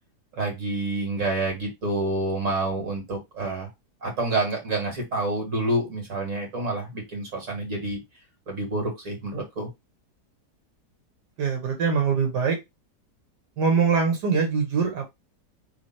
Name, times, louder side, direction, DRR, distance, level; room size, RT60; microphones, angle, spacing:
voice 1, 0.4-3.7 4.0-8.0 8.5-9.7, right 2 dB, 50° right, 0 dB, 2.4 m, -28 dB
voice 2, 11.4-12.6 13.6-15.1, right 5 dB, 90° right, 2 dB, 1.8 m, -23 dB
3.5 x 3.2 x 4.3 m, 0.20 s
omnidirectional pair, 1.7 m